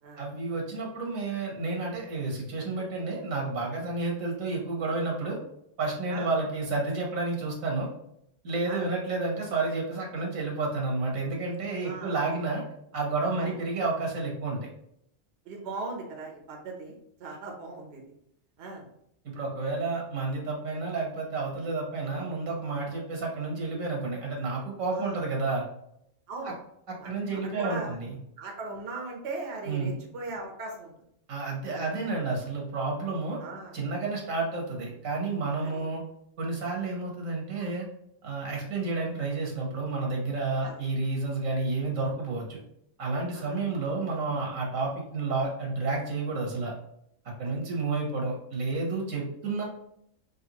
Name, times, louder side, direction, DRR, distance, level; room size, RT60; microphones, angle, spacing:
voice 1, 0.2-5.4 5.8-7.9 8.4-12.6 12.9-14.6 19.3-25.6 26.4-26.5 26.9-28.1 29.6-30.0 31.3-33.4 33.7-36.0 36.4-37.8 38.2-42.6 43.0-46.7 47.4-49.6, right 3 dB, 85° right, -1 dB, 1.6 m, -30 dB
voice 2, 11.8-12.2 13.4-13.5 15.4-18.0 18.6-18.9 24.9-25.2 26.3-26.5 27.0-28.0 28.4-30.9 31.7-31.9 33.4-33.8 35.6-35.8 38.4-38.5 40.6-40.8 43.3-43.6, right 3 dB, 60° right, 1 dB, 1.0 m, -39 dB
4.1 x 3.3 x 2.9 m, 0.74 s
omnidirectional pair, 1.3 m